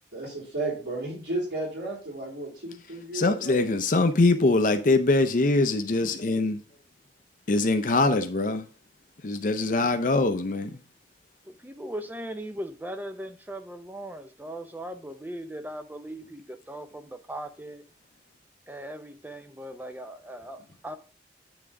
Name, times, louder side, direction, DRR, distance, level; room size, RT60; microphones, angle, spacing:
voice 1, 0.1-3.6, right 2 dB, 80° right, 3.7 m, -33 dB
voice 2, 3.1-6.6 7.5-8.6 9.2-10.7, left 2 dB, 50° left, 0.6 m, -23 dB
voice 3, 11.5-17.8 18.7-21.0, right 1 dB, 10° right, 0.5 m, -39 dB
9.0 x 3.7 x 4.6 m
head